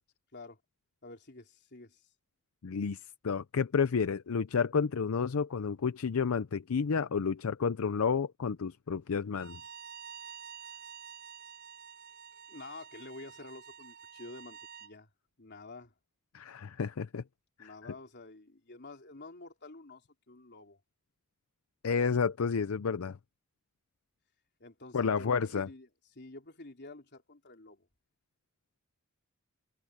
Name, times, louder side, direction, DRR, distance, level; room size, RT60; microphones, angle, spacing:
voice 1, 1.0-2.1 10.7-10.8 12.5-15.1 15.4-15.9 17.6-20.8 24.6-27.9, left 2 dB, 55° left, 3.7 m, -49 dB
voice 2, 2.6-9.6 16.3-17.2 17.6-17.7 21.8-23.2 24.9-25.7, left 5 dB, 85° left, 0.5 m, -30 dB
Bowed string instrument, 9.3-14.9, right 8 dB, 55° right, 3.7 m, -49 dB
head